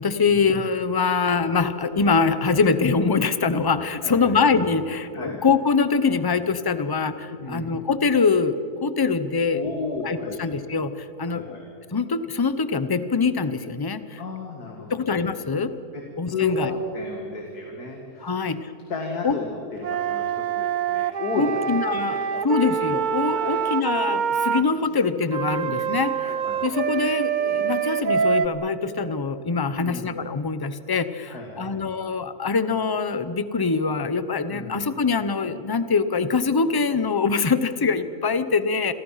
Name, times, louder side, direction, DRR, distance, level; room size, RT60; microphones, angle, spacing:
voice 1, 0.0-8.6 8.8-9.6 10.0-11.6 11.9-14.2 14.9-15.7 16.2-16.7 18.2-18.7 19.2-19.4 21.4-22.2 22.4-26.4 26.6-38.9, left 4 dB, 25° left, 12 dB, 0.6 m, -23 dB
voice 2, 4.0-4.3 5.1-5.4 7.3-7.8 9.5-10.5 11.2-11.6 14.2-14.9 15.9-16.0 16.3-18.5 18.9-22.6 23.3-23.6 26.2-26.8 29.7-30.1 31.3-31.8 34.5-34.8, left 3 dB, 85° left, 1 dB, 2.7 m, -33 dB
Wind instrument woodwind instrument, 19.8-24.6 25.3-28.5, right 8 dB, 80° right, 0.4 m, -25 dB
28.5 x 23.0 x 5.8 m, 2.7 s
omnidirectional pair, 1.6 m